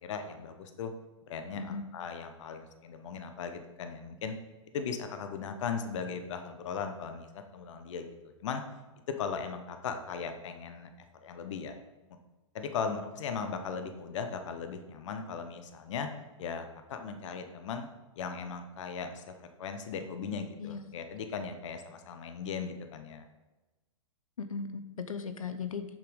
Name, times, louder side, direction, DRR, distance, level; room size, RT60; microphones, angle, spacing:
voice 1, 0.0-0.9 1.3-4.3 4.7-7.3 7.5-8.6 9.2-10.9 11.2-11.8 12.1-12.2 12.5-16.1 16.4-17.9 18.2-19.2 19.6-23.2, left 6 dB, 65° left, 7 dB, 1.0 m, -38 dB
voice 2, 24.4-25.9, left 5 dB, 90° left, 9 dB, 0.7 m, -37 dB
7.1 x 5.9 x 5.0 m, 1.1 s
hypercardioid pair, 115°, 17 cm